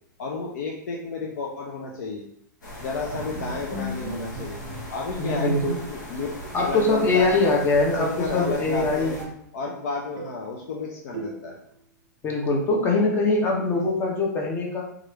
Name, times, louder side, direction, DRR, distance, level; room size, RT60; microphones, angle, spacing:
voice 1, 0.2-2.2 2.8-4.6 4.9-7.4 8.0-9.2 9.5-11.6 12.8-13.1, left 4 dB, 60° left, -1 dB, 0.5 m, -32 dB
sound 1, 2.6-9.2, equal, 80° left, 1.1 m, -39 dB
Bowed string instrument, 3.1-6.2 6.5-6.7 7.1-7.2 7.5-9.4 9.7-10.5 11.1-11.7, right 2 dB, 45° right, 0.5 m, -37 dB
voice 2, 5.2-5.7 6.5-9.3 12.2-14.8, left 3 dB, 20° left, -1 dB, 0.8 m, -22 dB
3.0 x 2.5 x 3.0 m, 0.69 s
hypercardioid pair, 115°, 10 cm